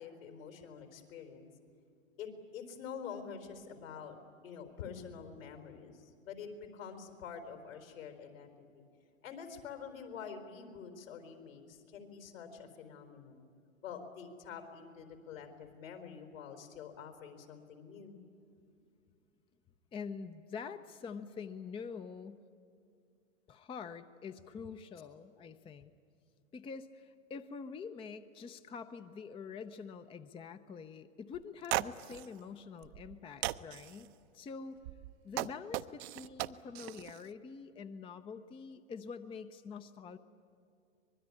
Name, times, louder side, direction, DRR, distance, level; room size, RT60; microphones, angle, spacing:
voice 1, 0.0-1.5 2.2-4.2 4.4-8.8 9.2-13.4 13.8-18.2, left 6 dB, 70° left, 5 dB, 4.5 m, -47 dB
voice 2, 19.9-22.4 23.5-25.9 26.5-34.8 35.2-40.2, left 5 dB, 15° left, 10 dB, 0.6 m, -46 dB
sound 1, 31.3-31.4 31.6-32.2 32.8-33.1 33.4-34.0 34.8-37.2, right 17 dB, 50° right, 0.8 m, -37 dB
24.0 x 21.5 x 9.8 m, 2.4 s
hypercardioid pair, 105°, 41 cm